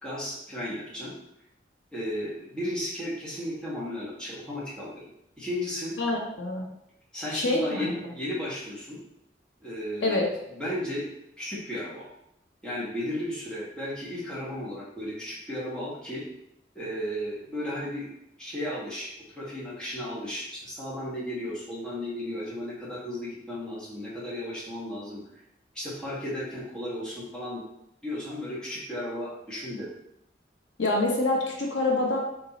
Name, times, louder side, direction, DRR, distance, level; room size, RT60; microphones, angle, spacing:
voice 1, 0.0-1.2 1.9-5.1 5.4-5.9 7.1-9.0 9.6-11.1 11.4-12.1 12.6-16.3 16.7-18.1 18.4-25.4 25.7-27.6 28.0-29.9, left 1 dB, 5° left, -8 dB, 1.2 m, -34 dB
voice 2, 6.0-6.6 7.3-7.9 10.0-10.3 30.8-32.2, left 2 dB, 90° left, -1 dB, 1.0 m, -26 dB
4.4 x 2.7 x 4.0 m, 0.78 s
head